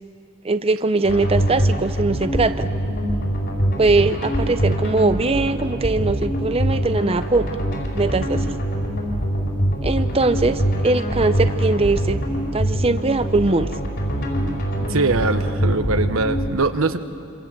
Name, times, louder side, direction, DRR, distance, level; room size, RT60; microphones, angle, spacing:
voice 1, 0.4-2.7 3.8-7.5 7.9-8.5 9.8-12.2 12.5-13.7, right 3 dB, 30° right, 11 dB, 0.6 m, -21 dB
sound 1, 1.0-16.5, equal, 55° left, 5.2 m, -23 dB
voice 2, 14.8-17.0, right 3 dB, 90° right, 9 dB, 1.2 m, -22 dB
27.0 x 27.0 x 7.6 m, 2.4 s
head